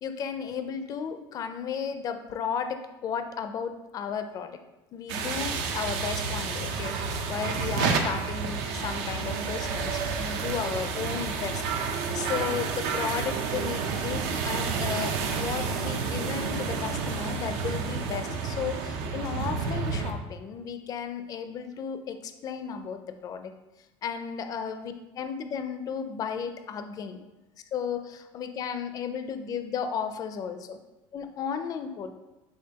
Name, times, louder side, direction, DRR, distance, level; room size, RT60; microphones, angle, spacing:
voice 1, 0.0-4.6 4.9-23.5 24.0-27.2 27.7-30.8 31.1-32.1, left 7 dB, 35° left, 8 dB, 0.4 m, -34 dB
sound 1, 5.1-20.1, right 5 dB, 85° right, 0.6 m, -30 dB
sound 2, 5.2-10.4, right 3 dB, 30° right, 0.5 m, -45 dB
5.5 x 3.3 x 2.8 m, 1.0 s
cardioid pair, 145°, 11 cm